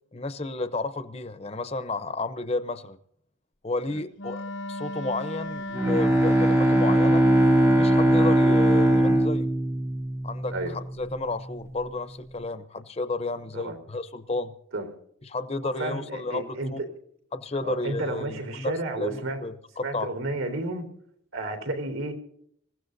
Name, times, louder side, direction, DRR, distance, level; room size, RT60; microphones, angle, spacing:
voice 1, 0.1-3.0 3.6-7.2 7.7-9.5 10.2-14.6 15.2-16.8 17.3-20.1, left 2 dB, 30° left, 11 dB, 0.7 m, -32 dB
Wind instrument woodwind instrument, 4.2-9.1, left 1 dB, 60° left, 0.9 m, -36 dB
Bowed string instrument, 5.7-10.8, right 1 dB, 15° right, 0.6 m, -20 dB
voice 2, 15.6-16.9 17.6-19.4 19.8-20.9 21.3-22.1, right 2 dB, 80° right, 6 dB, 3.8 m, -31 dB
26.5 x 15.5 x 2.7 m, 0.67 s
head